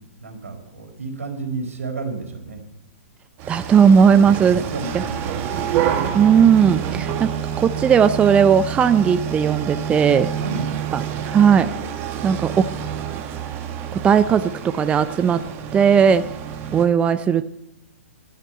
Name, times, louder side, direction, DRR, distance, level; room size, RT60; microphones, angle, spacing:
voice 1, 0.2-2.6 4.4-5.7 10.3-10.8 11.1-11.6, right 3 dB, 75° right, 3 dB, 4.2 m, -32 dB
sound 1, 3.4-16.9, right 8 dB, 30° right, 1.7 m, -28 dB
voice 2, 3.5-4.6 6.1-7.3 7.6-10.3 11.3-11.7 12.2-12.7 13.9-14.4 14.7-15.4 15.7-16.2 16.7-17.4, right 7 dB, 15° right, 13 dB, 0.5 m, -16 dB
11.5 x 10.0 x 9.0 m, 0.85 s
figure-of-eight pair, 120°, 8 cm